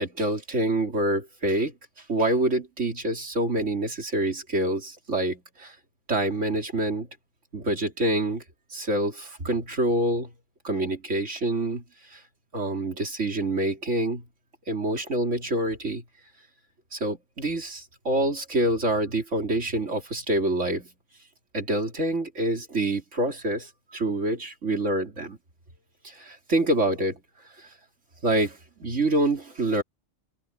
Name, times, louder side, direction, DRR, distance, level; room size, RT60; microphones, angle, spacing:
voice 1, 0.0-1.7 2.1-5.8 6.1-7.1 7.5-8.4 8.7-10.3 10.6-11.8 12.1-12.2 12.5-14.2 14.7-16.0 16.9-20.9 21.5-25.4 26.0-27.2 27.6-27.7 28.2-29.8, right 1 dB, 70° right, 3.6 m, -26 dB
open air
omnidirectional pair, 1.3 m